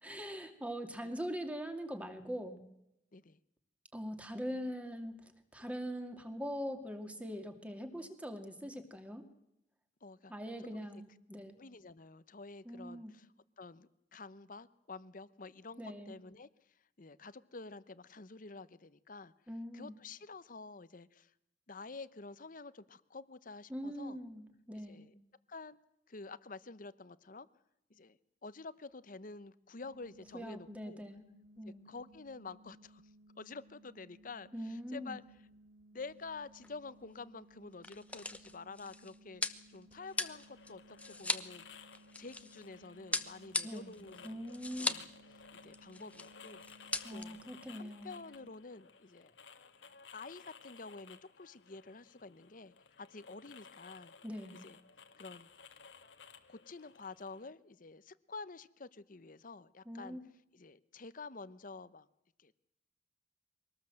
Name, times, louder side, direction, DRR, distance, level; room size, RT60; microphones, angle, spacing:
voice 1, 0.0-2.6 3.9-9.2 10.3-11.6 12.6-13.1 15.8-16.1 19.5-20.0 23.7-25.1 30.3-31.3 31.6-31.9 34.5-35.2 43.6-44.0 44.2-45.0 47.0-48.2 54.2-54.6 59.9-60.2, equal, 10° right, 6 dB, 2.4 m, -42 dB
voice 2, 10.0-10.3 10.6-10.9 11.5-13.3 13.6-16.5 17.0-19.3 19.7-21.3 21.7-24.2 24.9-25.1 25.5-25.8 26.1-27.5 27.9-31.0 31.6-33.0 33.4-35.2 35.9-41.7 42.2-44.4 44.8-45.1 45.6-47.4 47.7-49.3 50.1-54.1 54.6-54.8 55.2-55.5 56.5-60.2 60.5-62.1 62.4-62.5, left 3 dB, 50° left, 15 dB, 0.9 m, -49 dB
sound 1, 29.8-48.5, right 1 dB, 70° right, 2.7 m, -62 dB
sound 2, 36.1-36.4 36.6-36.7 37.5-42.6 43.1-45.1 45.4-45.5 45.7-46.3 46.6-47.2, left 2 dB, 10° left, 1.0 m, -39 dB
sound 3, 39.9-57.5, left 5 dB, 85° left, 1.7 m, -57 dB
23.5 x 18.5 x 7.7 m, 0.83 s
head